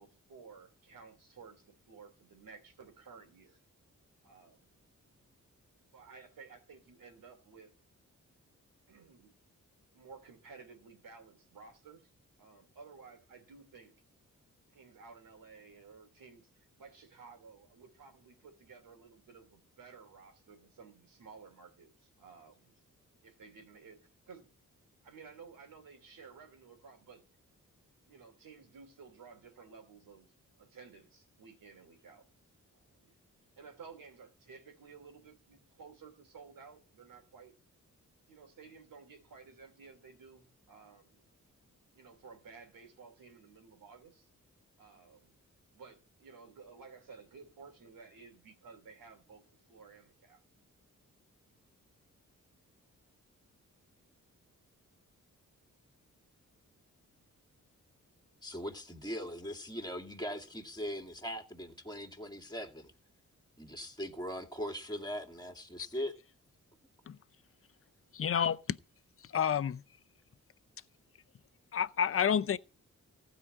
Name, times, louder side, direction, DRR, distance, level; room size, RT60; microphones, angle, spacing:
voice 1, 0.0-3.6 4.2-4.6 5.9-7.7 8.9-9.3 9.9-12.1 12.4-13.9 14.7-22.7 23.2-24.0 24.3-24.5 25.0-27.2 28.1-30.3 30.6-32.3 32.7-33.2 33.6-37.5 38.3-41.2 41.9-44.3 44.8-45.3 45.7-49.4 49.7-50.4, right 5 dB, 90° right, 2.9 m, -54 dB
voice 2, 58.4-62.9 63.6-66.1, equal, 10° left, 2.3 m, -40 dB
voice 3, 68.1-68.8 69.3-69.8 71.7-72.6, left 8 dB, 45° left, 0.6 m, -29 dB
15.0 x 5.0 x 8.4 m
cardioid pair, 65°, 32 cm